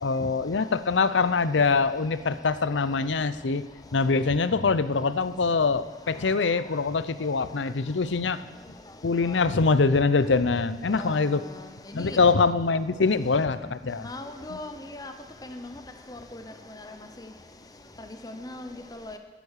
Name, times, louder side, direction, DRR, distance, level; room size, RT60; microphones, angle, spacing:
voice 1, 0.0-3.6 3.9-8.4 9.0-11.4 11.9-14.1 14.5-14.6, left 4 dB, 85° left, 14 dB, 0.6 m, -24 dB
voice 2, 14.0-15.1 18.2-18.6 19.1-19.2, left 2 dB, 20° left, 7 dB, 0.8 m, -38 dB
13.5 x 10.5 x 6.5 m, 1.3 s
head